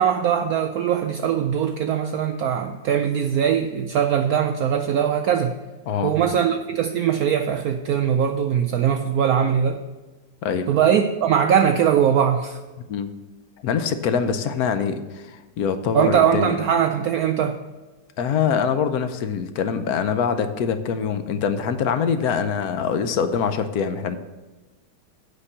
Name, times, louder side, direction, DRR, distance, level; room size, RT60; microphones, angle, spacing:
voice 1, 0.0-5.5 6.0-9.8 10.7-12.6 15.9-17.6, right 8 dB, 80° right, 6 dB, 0.8 m, -21 dB
voice 2, 13.6-16.6 18.2-24.2, left 6 dB, 65° left, 10 dB, 0.9 m, -24 dB
8.3 x 5.3 x 7.2 m, 1.2 s
omnidirectional pair, 2.1 m